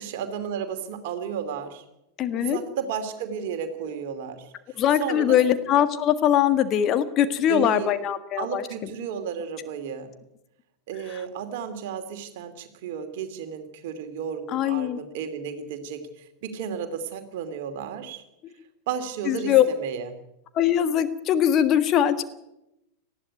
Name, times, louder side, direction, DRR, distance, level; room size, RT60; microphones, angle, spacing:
voice 1, 0.0-1.8 2.3-4.5 5.0-5.4 7.5-7.9 8.4-10.1 10.9-16.0 16.4-18.2 18.9-20.1, right 7 dB, 50° right, 8 dB, 2.7 m, -33 dB
voice 2, 2.2-2.6 4.8-8.6 11.1-11.2 14.5-15.0 19.3-19.7 20.5-22.2, left 10 dB, 35° left, 10 dB, 1.6 m, -21 dB
19.5 x 14.0 x 9.4 m, 0.88 s
figure-of-eight pair, 90°, 0 cm